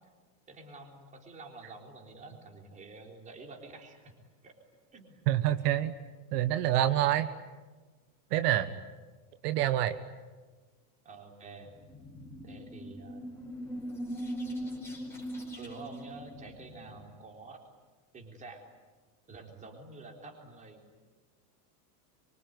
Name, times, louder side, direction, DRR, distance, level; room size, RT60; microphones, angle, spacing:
voice 1, 0.5-4.1 4.4-4.5 4.9-5.3 11.0-11.7 12.4-13.2 15.6-17.6 18.1-18.6 19.3-20.8, right 3 dB, 15° right, 2 dB, 3.8 m, -48 dB
voice 2, 5.3-5.9 6.3-7.3 8.3-8.8 9.4-10.0, right 12 dB, 75° right, 10 dB, 1.4 m, -27 dB
sound 1, 11.6-17.1, equal, 5° left, 4.8 m, -40 dB
25.0 x 24.5 x 9.6 m, 1.3 s
supercardioid pair, 175°, 47 cm